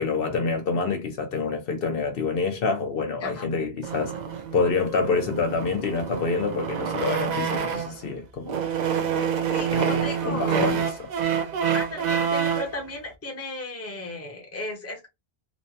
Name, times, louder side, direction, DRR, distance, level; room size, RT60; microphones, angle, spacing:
voice 1, 0.0-4.2 4.5-8.6 9.7-10.9, left 4 dB, 65° left, 0.8 m, -27 dB
sound 1, 3.8-8.0 8.4-12.8, right 7 dB, 55° right, 0.5 m, -27 dB
voice 2, 9.5-10.8 11.3-11.4 11.7-15.1, left 2 dB, 15° left, 0.7 m, -35 dB
3.1 x 2.2 x 2.6 m
omnidirectional pair, 1.1 m